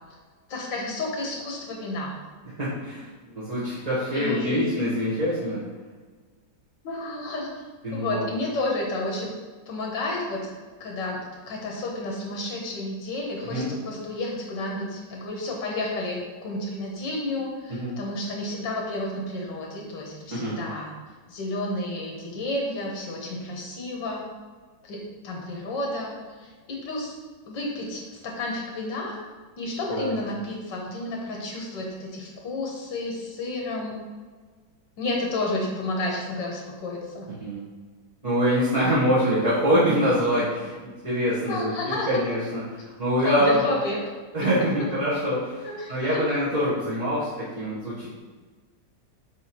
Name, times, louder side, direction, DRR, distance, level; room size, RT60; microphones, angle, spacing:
voice 1, 0.5-2.2 4.1-4.6 6.8-7.6 7.9-9.3 9.7-10.5 10.8-11.2 11.5-20.9 21.3-24.2 24.8-26.1 26.4-27.2 27.5-29.2 29.6-34.0 35.0-37.3 41.5-42.1 43.2-44.0 45.6-46.2, left 2 dB, 85° left, -1 dB, 2.0 m, -31 dB
voice 2, 2.6-5.6 7.8-8.3 13.4-13.7 17.7-18.0 20.3-20.6 29.9-30.2 37.4-37.6 38.2-43.6 44.3-48.1, equal, 25° right, -11 dB, 1.3 m, -25 dB
7.0 x 3.3 x 4.5 m, 1.4 s
omnidirectional pair, 1.9 m